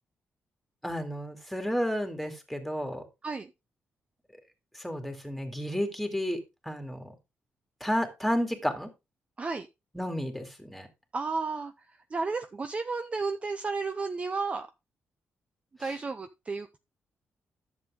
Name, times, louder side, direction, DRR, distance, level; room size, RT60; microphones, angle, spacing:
voice 1, 0.8-3.0 4.7-7.1 7.8-8.9 9.9-10.9 15.8-15.9, equal, ahead, 5 dB, 2.4 m, -32 dB
voice 2, 11.1-11.7 12.1-14.7 15.8-16.8, right 4 dB, 30° right, 8 dB, 0.6 m, -32 dB
11.0 x 7.1 x 3.6 m, 0.25 s
cardioid pair, 120°, 4 cm